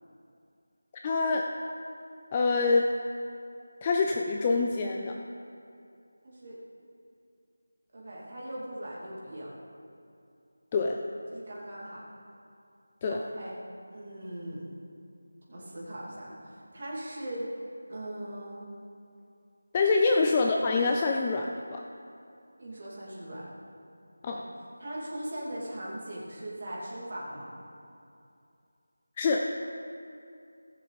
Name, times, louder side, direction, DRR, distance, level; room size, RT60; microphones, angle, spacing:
voice 1, 1.0-1.5 2.3-2.9 3.8-5.1 10.7-11.0 13.0-13.2 19.7-21.8 24.2-24.4 29.2-29.5, left 3 dB, 15° left, 1 dB, 0.3 m, -25 dB
voice 2, 6.2-6.6 7.9-9.5 11.3-12.0 13.0-13.6 13.9-14.7 15.5-17.5 17.9-18.6 20.1-20.2 22.6-23.5 24.3-24.5 24.8-27.5, right 1 dB, 30° right, -6 dB, 2.7 m, -40 dB
19.0 x 6.8 x 4.1 m, 2.5 s
figure-of-eight pair, 180°, 0 cm